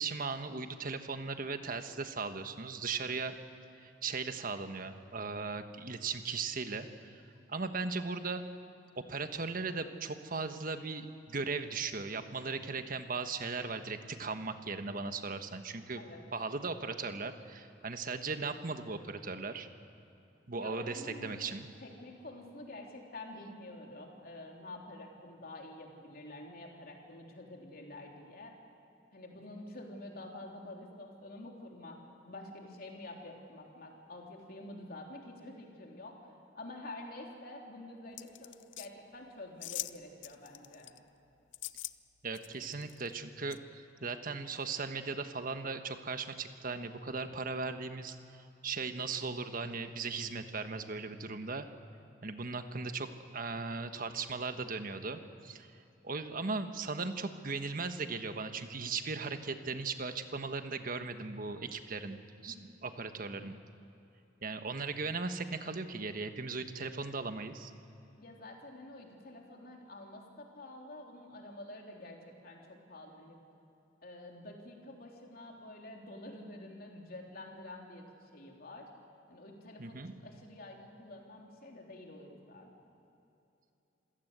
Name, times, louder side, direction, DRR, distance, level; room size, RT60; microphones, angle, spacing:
voice 1, 0.0-3.4 3.8-6.9 7.5-8.4 9.1-16.0 16.3-19.7 20.5-21.7 42.2-51.7 52.2-53.1 53.3-55.7 56.0-62.2 62.4-62.5 62.8-63.6 64.4-67.7 79.8-80.2, right 4 dB, 50° right, 8 dB, 1.3 m, -38 dB
voice 2, 20.5-28.5 29.1-36.2 36.5-40.9 62.5-62.6 68.2-73.4 74.0-78.9 79.3-82.7, left 1 dB, 55° left, 0 dB, 3.5 m, -48 dB
sound 1, 38.2-38.9 39.6-40.0 40.2-41.0 41.5-41.9 42.3-43.1 43.5-43.6, left 15 dB, 80° left, 0.6 m, -42 dB
27.0 x 16.5 x 8.1 m, 2.8 s
head